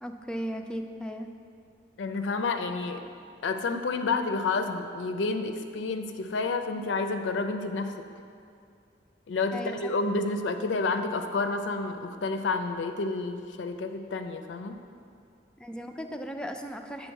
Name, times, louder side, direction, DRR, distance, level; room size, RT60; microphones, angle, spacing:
voice 1, 0.0-1.3 9.5-9.9 15.6-17.1, equal, 5° left, 4 dB, 0.3 m, -36 dB
voice 2, 2.0-3.0 3.4-8.0 9.3-14.7, left 3 dB, 80° left, 7 dB, 0.4 m, -30 dB
9.0 x 3.5 x 6.2 m, 2.4 s
head